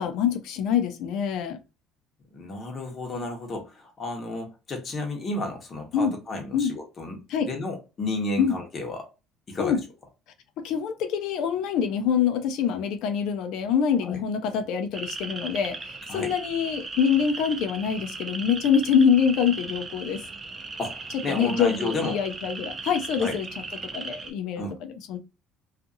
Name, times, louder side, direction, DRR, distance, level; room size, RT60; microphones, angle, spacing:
voice 1, 0.0-1.6 5.9-6.1 6.5-6.7 7.3-7.5 8.4-8.6 9.6-9.8 10.6-20.2 21.3-23.5 23.9-25.2, left 7 dB, 70° left, 0.5 m, -25 dB
voice 2, 2.3-7.2 7.5-9.1 9.5-9.8 14.0-14.2 16.1-16.3 20.8-22.2 23.2-23.4 24.6-24.8, left 2 dB, 35° left, 1.1 m, -32 dB
sound 1, 14.9-24.3, right 3 dB, 25° right, 0.6 m, -37 dB
2.6 x 2.4 x 2.6 m
cardioid pair, 130°, 0 cm